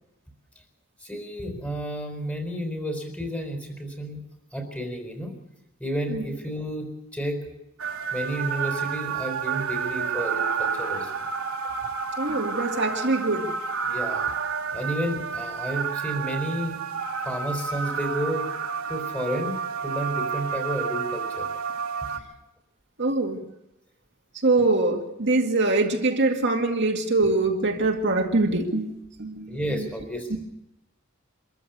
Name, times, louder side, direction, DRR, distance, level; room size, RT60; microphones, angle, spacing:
voice 1, 1.0-4.2 4.5-5.4 5.8-7.4 8.1-11.2 13.8-14.2 14.7-16.8 17.2-18.5 18.9-21.5 29.5-30.4, equal, 5° left, 4 dB, 4.5 m, -31 dB
sound 1, 7.8-22.2, right 6 dB, 85° right, 2.6 m, -30 dB
voice 2, 12.2-13.5 23.0-23.4 24.4-29.9 30.3-30.4, right 2 dB, 55° right, 2 dB, 2.2 m, -24 dB
25.5 x 14.0 x 8.1 m, 0.86 s
head